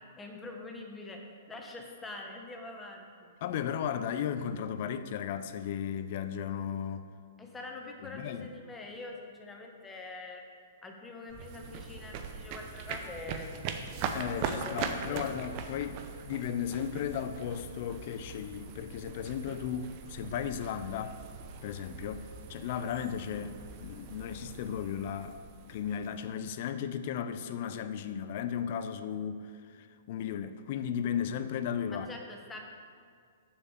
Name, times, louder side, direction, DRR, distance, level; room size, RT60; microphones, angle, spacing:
voice 1, 0.1-3.3 7.4-10.4 10.8-14.0 14.4-15.3 31.9-32.6, left 3 dB, 15° left, 1.4 m, -45 dB
voice 2, 3.4-7.1 8.1-8.5 14.1-16.0 16.2-21.2 21.6-23.6 23.8-25.4 25.7-32.1, left 8 dB, 50° left, 0.6 m, -35 dB
sound 1, 11.3-26.5, right 5 dB, 40° right, 0.8 m, -41 dB
7.0 x 6.7 x 7.1 m
figure-of-eight pair, 115°, 0 cm